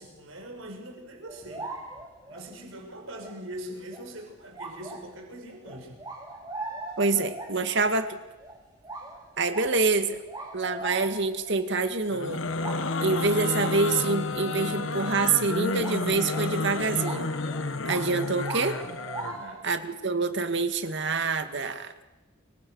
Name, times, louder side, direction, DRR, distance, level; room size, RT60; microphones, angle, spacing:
voice 1, 0.0-1.7 2.3-6.1 19.3-19.7, right 1 dB, 80° right, 2 dB, 5.9 m, -42 dB
sound 1, 1.3-2.5 3.2-3.4 3.9-4.1 4.5-5.2 5.6-7.9 8.4-8.6 8.8-11.5 11.8-11.9 12.3-13.3 14.0-14.2 15.0-15.3 15.6-19.6, right 2 dB, 20° right, 5.4 m, -40 dB
voice 2, 7.0-8.2 9.4-10.2 10.5-12.4 13.0-17.3 17.9-18.8 19.6-21.9, right 3 dB, 60° right, 8 dB, 2.1 m, -26 dB
sound 2, 12.1-19.4, left 3 dB, 70° left, 1.3 m, -31 dB
28.5 x 24.5 x 6.5 m, 1.1 s
head